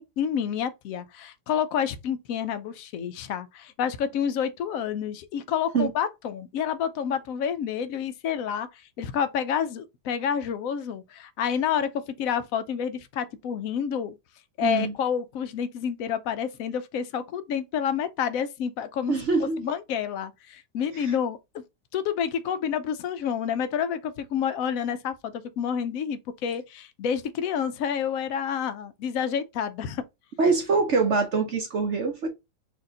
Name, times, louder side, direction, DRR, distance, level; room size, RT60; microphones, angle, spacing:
voice 1, 0.0-14.2 14.6-19.2 19.6-21.4 21.9-30.0, left 8 dB, 70° left, 0.8 m, -29 dB
voice 2, 14.6-14.9 19.1-19.6 20.9-21.1 30.4-32.3, right 4 dB, 55° right, 0.9 m, -24 dB
4.3 x 2.9 x 3.7 m
omnidirectional pair, 1.8 m